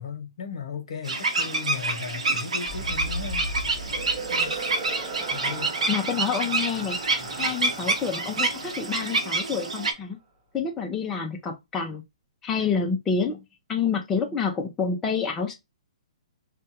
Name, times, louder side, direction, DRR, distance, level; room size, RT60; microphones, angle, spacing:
voice 1, 0.0-3.5 3.8-4.7 5.3-5.8, left 6 dB, 60° left, 1.1 m, -37 dB
sound 1, 1.1-9.9, right 3 dB, 90° right, 1.0 m, -28 dB
sound 2, 2.7-10.0, right 1 dB, 25° right, 1.1 m, -37 dB
voice 2, 5.9-7.0 7.4-10.2 10.5-12.0 12.4-13.4 13.7-15.5, left 6 dB, 15° left, 0.5 m, -28 dB
3.2 x 2.2 x 2.9 m
hypercardioid pair, 150°, 3 cm